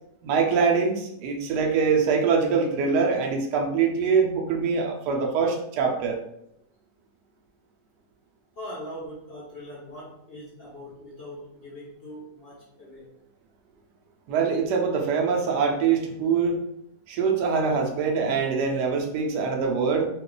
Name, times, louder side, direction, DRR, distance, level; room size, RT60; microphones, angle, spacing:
voice 1, 0.2-6.2 14.3-16.6 17.1-20.1, right 5 dB, 75° right, 2 dB, 1.2 m, -24 dB
voice 2, 8.6-13.1, equal, 60° left, -4 dB, 0.6 m, -41 dB
3.0 x 2.3 x 3.7 m, 0.75 s
omnidirectional pair, 1.8 m